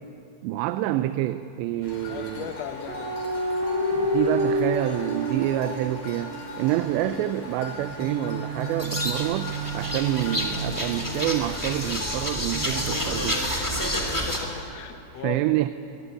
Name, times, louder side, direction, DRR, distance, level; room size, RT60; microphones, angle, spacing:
voice 1, 0.4-2.5 4.0-13.5 15.1-15.7, right 14 dB, 85° right, 11 dB, 2.9 m, -27 dB
sound 1, 1.8-14.6, left 3 dB, 60° left, 6.1 m, -40 dB
voice 2, 2.1-3.2 7.0-7.2 14.3-15.5, left 7 dB, 85° left, 7 dB, 1.4 m, -37 dB
sound 2, 2.9-6.6 8.0-11.7 12.5-13.8, right 1 dB, 60° right, 3.3 m, -30 dB
sound 3, 8.8-14.4, equal, 5° left, 1.9 m, -29 dB
24.0 x 19.0 x 9.8 m, 2.7 s
omnidirectional pair, 5.0 m